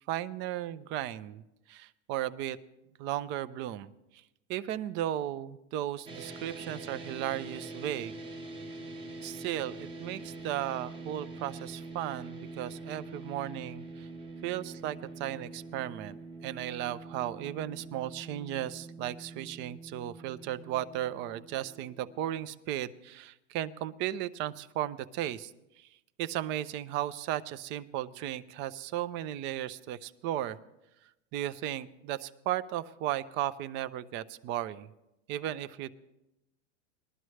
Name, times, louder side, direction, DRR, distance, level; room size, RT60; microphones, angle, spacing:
voice 1, 0.1-1.4 1.7-2.6 3.0-3.9 4.5-8.1 9.2-14.1 14.4-16.1 16.4-25.5 25.8-25.9 26.2-30.6 31.3-34.9 35.3-35.9, right 12 dB, 35° right, 16 dB, 0.4 m, -35 dB
sound 1, 6.1-22.4, right 3 dB, 15° right, 0.9 m, -45 dB
20.0 x 12.5 x 3.2 m, 0.92 s
supercardioid pair, 140°, 36 cm